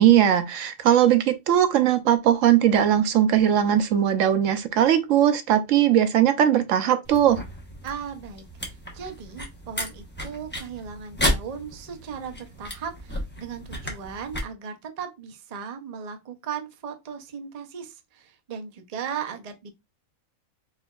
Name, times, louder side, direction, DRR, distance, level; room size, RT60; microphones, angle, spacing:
voice 1, 0.0-7.4, right 10 dB, 75° right, 0.9 m, -19 dB
sound 1, 7.0-14.4, equal, 10° left, 0.8 m, -33 dB
voice 2, 7.8-19.7, right 7 dB, 45° right, 0.5 m, -37 dB
4.3 x 3.8 x 2.3 m
omnidirectional pair, 1.4 m